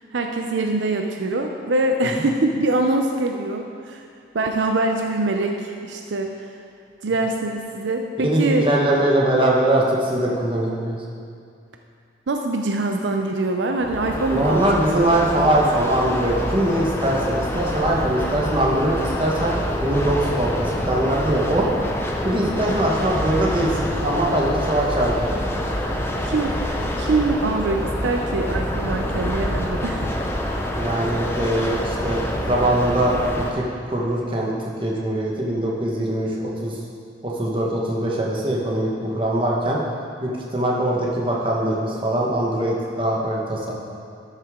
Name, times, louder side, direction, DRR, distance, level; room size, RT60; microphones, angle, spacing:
voice 1, 0.1-4.0 4.3-6.3 7.0-8.7 12.3-15.1 26.2-26.6 27.0-30.1, right 2 dB, 70° right, 3 dB, 0.5 m, -23 dB
voice 2, 8.2-11.0 14.3-19.5 19.8-21.7 22.2-25.3 30.7-32.2 32.5-34.5 34.8-36.7 37.2-39.8 40.2-43.7, right 1 dB, 25° right, -3 dB, 1.2 m, -22 dB
sound 1, 13.8-33.5, equal, 10° left, 0.6 m, -26 dB
12.5 x 6.6 x 3.6 m, 2.4 s
head